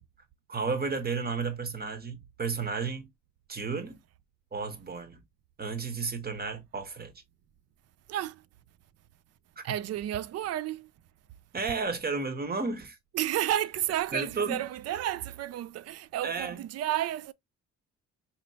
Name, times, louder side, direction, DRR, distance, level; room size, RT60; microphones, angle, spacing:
voice 1, 0.5-3.1 3.5-4.0 4.5-5.2 5.6-7.1 9.6-9.7 11.5-13.0 14.1-14.6 16.2-16.6, right 4 dB, 30° right, 1.1 m, -32 dB
voice 2, 8.1-8.4 9.6-10.9 13.1-17.3, right 12 dB, 55° right, 0.4 m, -31 dB
4.4 x 2.9 x 2.7 m
cardioid pair, 90°, 30 cm